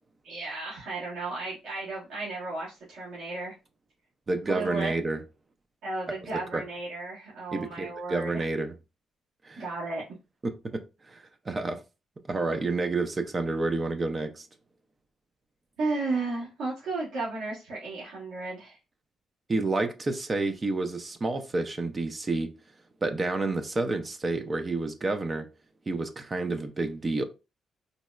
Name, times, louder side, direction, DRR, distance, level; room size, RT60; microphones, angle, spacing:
voice 1, 0.2-3.5 4.5-4.9 5.8-8.4 9.6-10.0 15.8-18.8, right 3 dB, 75° right, 1.3 m, -34 dB
voice 2, 4.3-5.2 6.5-6.6 7.5-8.7 9.4-9.6 10.4-11.8 12.3-14.5 19.5-22.5 23.0-25.5 25.9-27.2, right 3 dB, 30° right, 0.4 m, -29 dB
3.9 x 2.1 x 2.3 m
cardioid pair, 90°, 0 cm